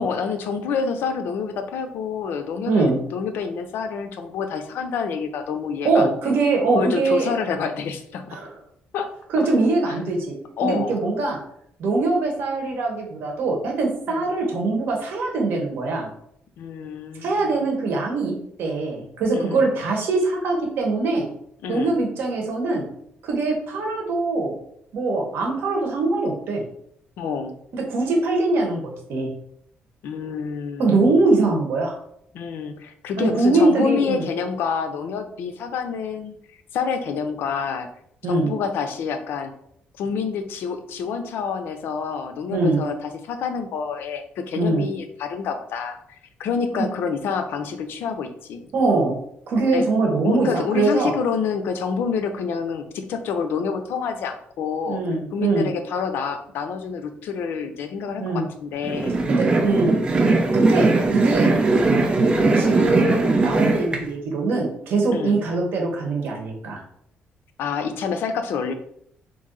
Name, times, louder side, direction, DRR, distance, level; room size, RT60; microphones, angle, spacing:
voice 1, 0.0-6.1 6.7-8.4 8.9-9.1 9.4-9.5 9.9-10.0 10.6-11.0 14.1-14.2 16.6-17.5 19.3-19.7 21.6-21.9 27.2-27.6 30.0-31.2 32.3-36.4 36.7-37.9 38.3-39.5 40.0-46.0 46.4-48.6 49.7-49.9 50.2-55.0 55.3-59.1 61.4-61.6 65.1-65.4 67.6-68.7, left 6 dB, 80° left, 8 dB, 0.5 m, -28 dB
voice 2, 2.7-3.0 5.8-7.3 8.3-8.5 9.3-10.3 10.6-11.4 11.8-16.1 17.2-18.3 18.6-21.3 21.7-22.8 23.2-24.5 24.9-26.6 27.7-29.3 30.8-32.0 33.2-34.2 38.2-38.5 42.5-42.8 44.6-44.8 46.7-46.9 48.7-49.2 49.5-51.1 54.9-55.7 58.2-58.5 59.3-59.9 60.5-61.5 62.4-66.8, right 3 dB, 75° right, 1 dB, 1.0 m, -22 dB
sound 1, 58.8-64.0, right 3 dB, 25° right, 0.5 m, -19 dB
3.0 x 2.6 x 3.8 m, 0.70 s
cardioid pair, 135°, 4 cm